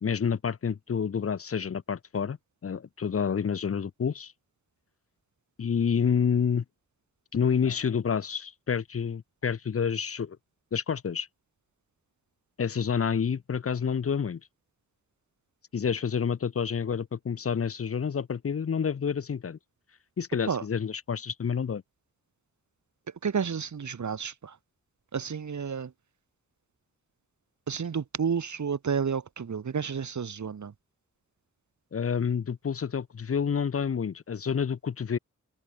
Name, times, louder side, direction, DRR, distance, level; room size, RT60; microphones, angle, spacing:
voice 1, 0.0-2.4 2.6-4.3 5.6-6.6 7.3-10.4 10.7-11.3 12.6-14.4 15.7-19.6 20.2-21.8 31.9-35.2, left 6 dB, 50° left, 0.9 m, -28 dB
voice 2, 23.2-24.6 25.1-25.9 27.7-30.7, right 6 dB, 70° right, 5.2 m, -31 dB
open air
wide cardioid pair, 110°, 30 cm